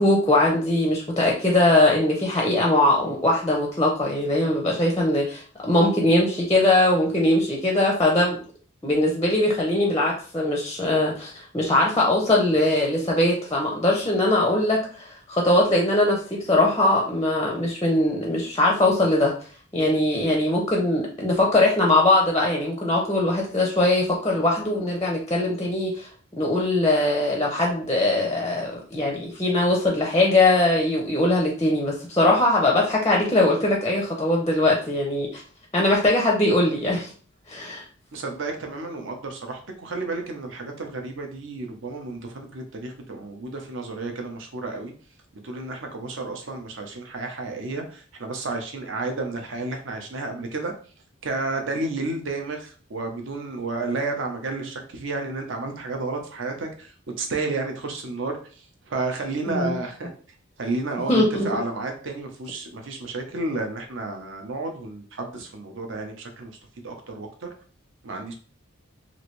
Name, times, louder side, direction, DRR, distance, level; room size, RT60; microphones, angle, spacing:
voice 1, 0.0-8.4 8.8-19.3 19.7-26.1 26.4-35.4 35.7-37.1 37.5-37.8 59.5-59.8 61.1-61.5, left 1 dB, 15° left, -1 dB, 0.5 m, -21 dB
voice 2, 38.1-44.9 45.4-50.7 51.2-60.1 60.6-66.6 66.8-67.5 68.0-68.3, right 3 dB, 60° right, 4 dB, 0.7 m, -31 dB
3.0 x 2.5 x 3.0 m, 0.42 s
head